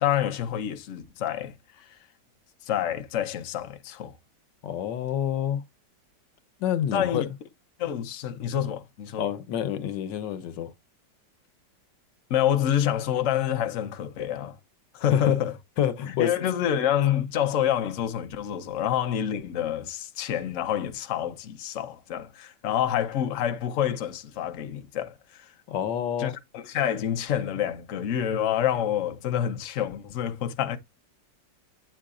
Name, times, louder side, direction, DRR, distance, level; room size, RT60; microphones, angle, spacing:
voice 1, 0.0-2.0 2.6-4.1 6.9-7.2 7.8-9.3 12.3-14.6 14.9-15.5 16.1-25.5 26.2-30.8, left 10 dB, 55° left, 1.0 m, -27 dB
voice 2, 4.6-5.6 6.6-7.3 9.2-10.7 15.1-15.4 15.8-16.3 25.7-26.3, left 10 dB, 90° left, 1.5 m, -27 dB
8.4 x 5.6 x 2.4 m
omnidirectional pair, 1.9 m